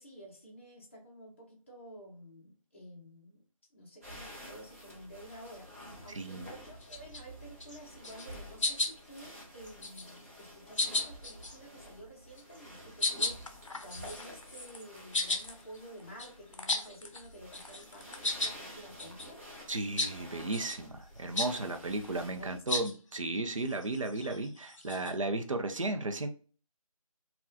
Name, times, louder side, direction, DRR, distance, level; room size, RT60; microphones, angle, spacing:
voice 1, 0.0-3.4 3.7-5.7 6.0-13.4 13.8-19.5 22.4-22.8, right 1 dB, 20° left, -3 dB, 0.7 m, -51 dB
sound 1, 4.0-22.6, equal, 25° right, 0.8 m, -50 dB
voice 2, 6.1-6.5 19.7-26.3, right 2 dB, 60° right, 6 dB, 0.6 m, -34 dB
sound 2, 6.8-7.2 7.6-8.3 8.6-9.2 9.6-10.2 10.8-11.6 12.4-12.6 13.0-17.3 17.5-18.6 19.0-19.3 20.0-20.1 20.5-20.8 21.4-21.5 22.7-22.9 23.6-25.1, left 2 dB, 60° left, 0.6 m, -34 dB
3.6 x 2.3 x 2.5 m, 0.39 s
figure-of-eight pair, 160°, 19 cm